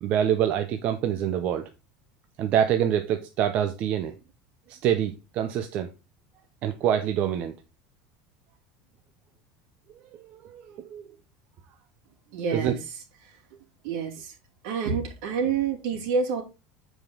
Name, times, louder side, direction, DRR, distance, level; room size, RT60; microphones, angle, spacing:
voice 1, 0.0-1.6 2.4-4.1 4.7-5.9 6.6-7.5 10.5-11.0 12.5-12.7, right 9 dB, 40° right, 0.6 m, -25 dB
voice 2, 12.3-13.4 13.8-14.3 14.6-16.4, right 5 dB, 65° right, 2.7 m, -28 dB
7.4 x 5.0 x 3.8 m
supercardioid pair, 155°, 4 cm